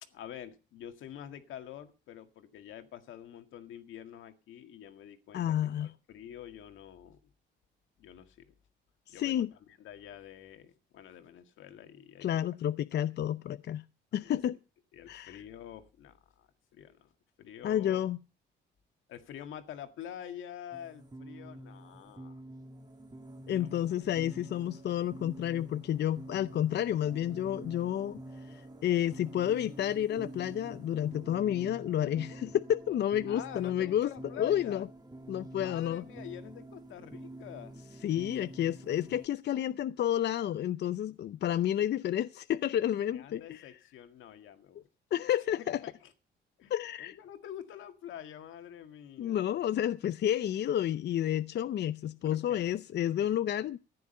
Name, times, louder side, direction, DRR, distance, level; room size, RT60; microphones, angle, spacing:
voice 1, 0.0-7.2 8.0-8.5 9.1-12.4 14.2-14.4 14.9-17.1 17.4-18.1 19.1-22.4 23.6-23.8 33.3-34.9 35.5-37.8 43.1-44.9 45.8-46.1 46.6-46.7 47.0-49.5 52.2-52.7 53.2-53.4, left 10 dB, 80° left, 1.9 m, -47 dB
voice 2, 5.3-5.9 9.1-9.5 12.2-13.8 14.1-14.6 15.1-15.4 17.6-18.2 23.5-28.2 28.5-34.1 34.4-34.9 35.3-36.0 38.0-43.7 45.1-45.8 46.7-47.2 49.2-53.8, left 11 dB, 60° left, 0.6 m, -30 dB
sound 1, 20.7-39.3, right 1 dB, 20° right, 2.0 m, -48 dB
14.5 x 10.0 x 5.4 m
cardioid pair, 90°, 20 cm